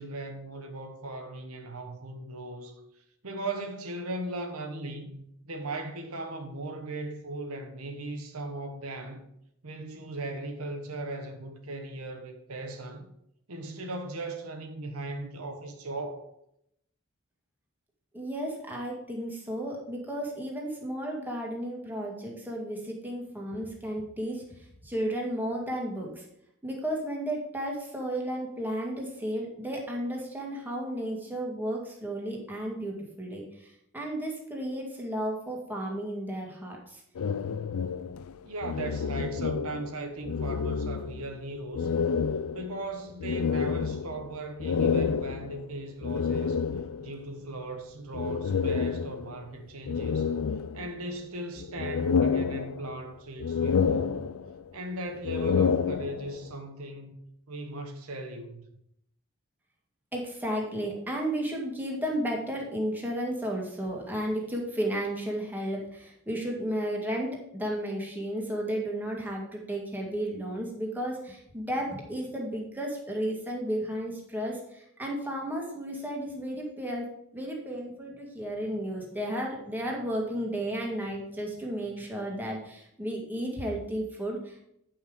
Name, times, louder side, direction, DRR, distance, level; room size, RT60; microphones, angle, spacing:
voice 1, 0.0-2.8 3.2-9.2 9.6-13.1 13.5-16.3 38.4-41.9 42.5-46.6 47.0-50.3 50.7-54.2 54.7-58.6, right 2 dB, 75° right, 1.2 m, -38 dB
voice 2, 18.1-24.4 24.8-26.3 26.6-37.0 60.1-84.6, right 1 dB, 10° right, 2.0 m, -33 dB
sound 1, 37.1-40.0 40.2-41.3 41.7-47.2 48.1-49.4 49.9-51.2 51.6-53.1 53.4-54.7 55.1-56.5, left 6 dB, 75° left, 0.4 m, -29 dB
9.0 x 5.7 x 5.1 m
head